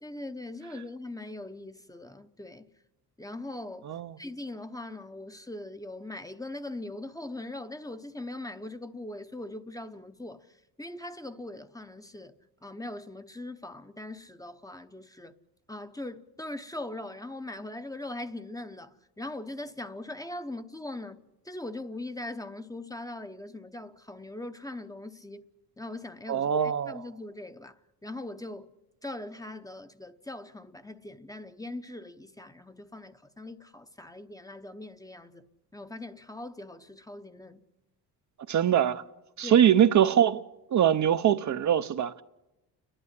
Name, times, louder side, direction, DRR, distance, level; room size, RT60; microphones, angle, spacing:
voice 1, 0.0-2.7 3.2-15.3 15.7-25.5 25.8-28.7 29.0-35.5 35.7-37.6 39.4-39.6, left 2 dB, 10° left, 0.8 m, -41 dB
voice 2, 26.3-27.0 38.5-39.0 39.4-40.4 40.7-42.2, right 9 dB, 45° right, 0.7 m, -23 dB
29.5 x 11.0 x 9.7 m
cardioid pair, 95°, 39 cm